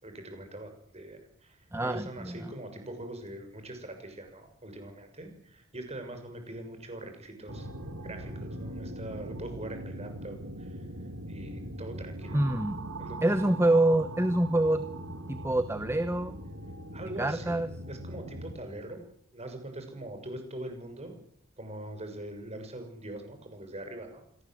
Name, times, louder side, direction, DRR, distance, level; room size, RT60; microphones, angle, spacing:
voice 1, 0.0-7.7 8.0-12.4 13.0-13.5 16.9-19.0 19.3-21.1 21.6-24.2, right 1 dB, 30° right, 6 dB, 6.4 m, -42 dB
voice 2, 1.7-2.4 12.3-12.8 13.2-16.4 17.2-17.7, right 1 dB, 15° right, 11 dB, 1.0 m, -26 dB
sound 1, 7.5-18.6, right 1 dB, 80° right, 3.2 m, -41 dB
26.0 x 18.0 x 7.9 m, 0.67 s
head